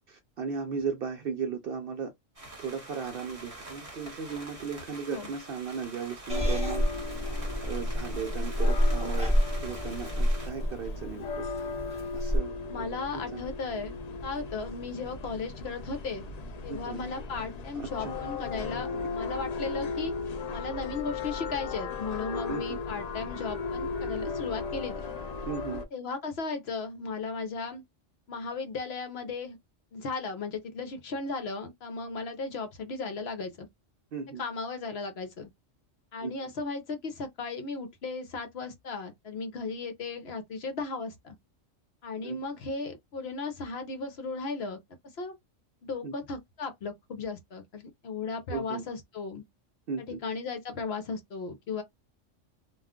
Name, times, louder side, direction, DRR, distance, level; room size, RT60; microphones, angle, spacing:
voice 1, 0.1-2.1 2.6-6.8 7.6-9.3 9.6-11.5 12.1-13.0 16.7-17.1 17.7-18.2 18.9-19.0 22.5-22.8 25.5-25.8 34.1-34.4 36.2-36.3 42.2-42.4 46.0-46.1 48.5-48.8 49.9-50.2, right 6 dB, 60° right, 0.6 m, -36 dB
sound 1, 2.4-10.5, right 2 dB, 30° right, 1.3 m, -46 dB
sound 2, 6.3-25.9, left 4 dB, 90° left, 0.3 m, -36 dB
Purr / Meow, 6.3-12.4, equal, 5° right, 0.9 m, -29 dB
voice 2, 12.7-16.3 16.6-20.1 20.5-25.1 25.7-27.8 28.3-29.6 29.9-33.7 34.4-35.5 36.1-41.4 42.0-44.8 45.2-45.3 45.8-49.4 50.2-51.8, left 4 dB, 60° left, 0.8 m, -36 dB
2.3 x 2.3 x 3.5 m
omnidirectional pair, 1.3 m